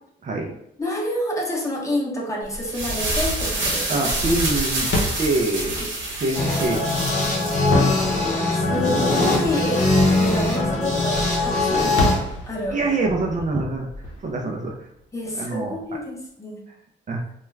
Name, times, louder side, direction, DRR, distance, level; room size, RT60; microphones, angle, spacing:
voice 1, 0.2-0.5 3.9-4.9 5.2-5.8 6.2-7.5 12.7-13.9 14.2-14.7 15.3-15.8 17.1-17.2, right 2 dB, 40° right, 1 dB, 0.5 m, -25 dB
voice 2, 0.8-3.9 5.8-5.9 8.5-12.8 15.1-16.6, left 1 dB, 15° left, -2 dB, 0.8 m, -28 dB
sound 1, 2.5-7.7, right 2 dB, 75° right, 0.9 m, -27 dB
sound 2, 4.9-15.4, left 1 dB, 65° left, 0.7 m, -32 dB
sound 3, 6.3-12.1, left 2 dB, 40° left, 1.1 m, -21 dB
2.3 x 2.2 x 3.1 m, 0.77 s
cardioid pair, 90°, 20 cm